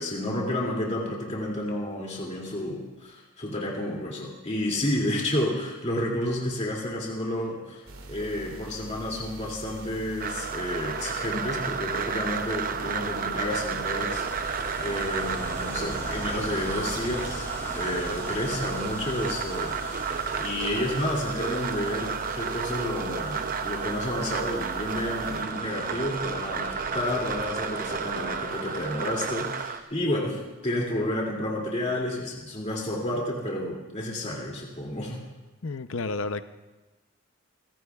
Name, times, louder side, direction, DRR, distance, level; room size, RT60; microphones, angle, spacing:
voice 1, 0.0-7.8 8.1-14.5 14.8-17.5 17.7-30.4 30.6-35.2, left 1 dB, 30° left, -2 dB, 2.6 m, -31 dB
sound 1, 7.9-25.4, right 2 dB, 75° right, 2.2 m, -43 dB
sound 2, 10.2-29.8, right 6 dB, 40° right, 0.6 m, -32 dB
Ocean, 12.6-29.8, left 1 dB, 10° left, 3.0 m, -43 dB
voice 2, 35.6-36.4, left 3 dB, 65° left, 11 dB, 0.7 m, -31 dB
27.5 x 16.5 x 2.4 m, 1.2 s
head